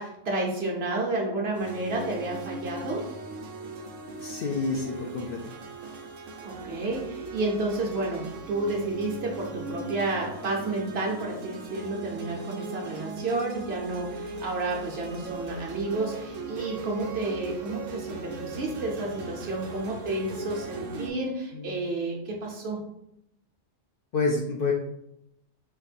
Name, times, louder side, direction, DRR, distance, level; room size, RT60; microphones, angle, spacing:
voice 1, 0.0-3.1 6.4-22.8, right 2 dB, 55° right, -1 dB, 1.1 m, -31 dB
sound 1, 1.5-21.1, right 3 dB, 80° right, 1.1 m, -39 dB
voice 2, 4.2-5.6 21.5-21.8 24.1-24.7, left 3 dB, 60° left, 1 dB, 0.6 m, -28 dB
4.4 x 2.6 x 4.2 m, 0.79 s
omnidirectional pair, 1.3 m